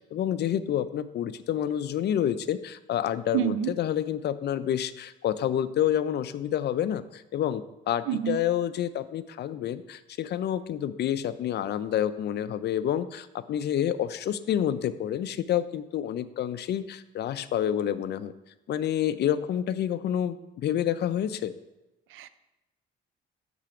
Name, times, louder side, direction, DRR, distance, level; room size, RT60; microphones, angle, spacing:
voice 1, 0.0-18.3 18.7-21.5, left 10 dB, 60° left, 13 dB, 0.4 m, -28 dB
voice 2, 3.3-3.7 8.1-8.4 22.1-22.3, right 11 dB, 85° right, 14 dB, 0.4 m, -28 dB
7.4 x 3.4 x 4.9 m, 0.98 s
cardioid pair, 90°, 20 cm